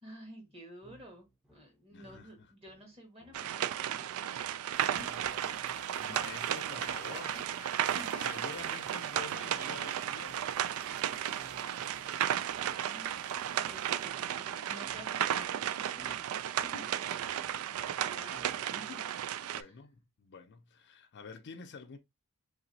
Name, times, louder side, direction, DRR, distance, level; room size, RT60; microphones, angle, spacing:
voice 1, 0.0-4.1 4.9-5.3 7.3-7.4 7.9-8.3 12.6-16.2 16.6-19.0 19.4-19.7, equal, 25° right, 1.5 m, -52 dB
sound 1, 0.8-9.6 10.2-18.9, right 1 dB, 5° right, 0.7 m, -63 dB
voice 2, 1.9-2.5 4.9-7.4 7.9-10.6 17.5-17.6 19.5-22.0, left 5 dB, 55° left, 0.5 m, -49 dB
sound 2, 3.3-19.6, right 10 dB, 75° right, 0.3 m, -34 dB
sound 3, 4.7-14.1, right 2 dB, 55° right, 1.0 m, -50 dB
3.8 x 2.9 x 2.7 m
head